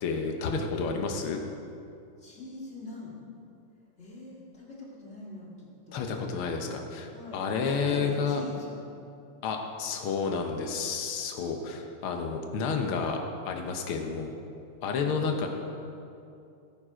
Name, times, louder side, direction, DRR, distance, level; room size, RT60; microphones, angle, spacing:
voice 1, 0.0-1.4 5.9-8.4 9.4-13.2 13.4-14.3 14.8-15.5, left 5 dB, 80° left, 3 dB, 1.2 m, -30 dB
voice 2, 2.2-3.1 4.0-6.2 7.1-8.9 14.9-15.2, left 1 dB, 25° left, -5 dB, 1.9 m, -43 dB
15.0 x 9.4 x 5.0 m, 2.6 s
omnidirectional pair, 3.8 m